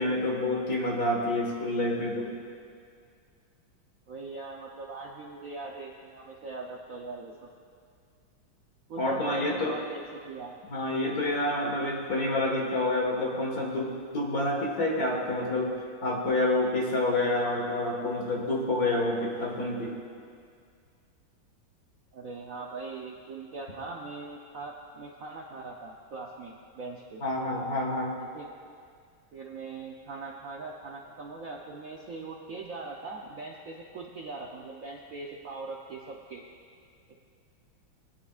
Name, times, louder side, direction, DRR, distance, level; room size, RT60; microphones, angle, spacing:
voice 1, 0.0-2.3 9.0-9.8 10.7-15.8 16.0-20.0 27.2-28.1, left 2 dB, 45° left, -2 dB, 2.0 m, -28 dB
voice 2, 4.1-7.5 8.9-10.6 22.1-27.2 28.2-28.5 29.3-36.4 37.1-37.2, right 3 dB, 60° right, -1 dB, 0.9 m, -41 dB
21.5 x 9.6 x 2.5 m, 2.2 s
omnidirectional pair, 2.3 m